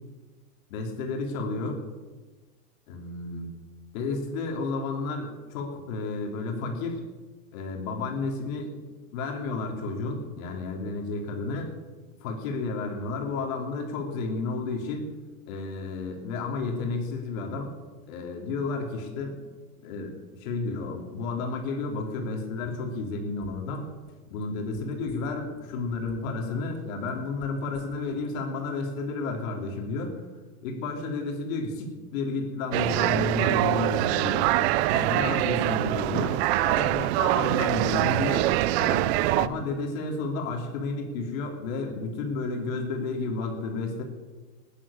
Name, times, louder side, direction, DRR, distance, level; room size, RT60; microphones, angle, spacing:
voice 1, 0.7-1.8 2.9-3.5 3.9-7.0 7.5-8.8 9.1-11.7 12.2-15.1 15.5-17.7 18.1-19.4 19.8-23.8 24.3-30.3 30.6-34.6 34.9-38.5 38.8-39.1 39.3-44.0, left 3 dB, 60° left, 1 dB, 3.1 m, -32 dB
sound 1, 23.4-23.8 24.1-25.6 25.9-26.4 26.7-28.3 28.6-28.7, left 10 dB, 80° left, 3.1 m, -51 dB
sound 2, 32.7-39.5, right 15 dB, 45° right, 0.6 m, -24 dB
15.0 x 10.0 x 7.1 m, 1.3 s
supercardioid pair, 135°, 45 cm